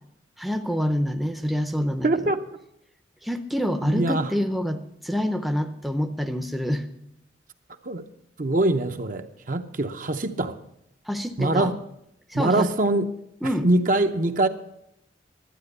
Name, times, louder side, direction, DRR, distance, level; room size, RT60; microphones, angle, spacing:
voice 1, 0.4-2.1 3.2-6.8 11.1-11.7 12.3-12.7 13.4-13.7, equal, ahead, 0.6 m, -26 dB
voice 2, 2.0-2.5 3.8-4.3 7.8-8.1 8.4-10.6 11.4-11.8 12.3-13.2 13.4-14.5, right 2 dB, 45° right, 0.7 m, -23 dB
12.0 x 9.3 x 6.6 m
head